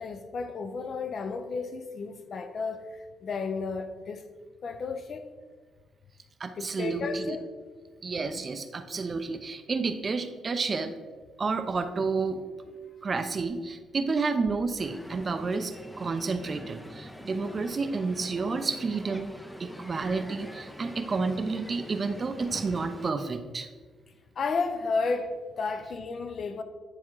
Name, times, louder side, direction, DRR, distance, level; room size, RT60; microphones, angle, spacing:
voice 1, 0.0-2.9 3.2-4.3 4.6-5.3 6.6-7.5 24.4-26.6, left 4 dB, 50° left, 0.6 m, -32 dB
voice 2, 6.4-7.4 8.0-10.9 11.4-19.3 19.6-23.7, right 4 dB, 35° right, 0.6 m, -30 dB
Crowd, 14.8-23.1, equal, 5° left, 0.5 m, -44 dB
9.6 x 3.7 x 4.6 m
cardioid pair, 90°, 0 cm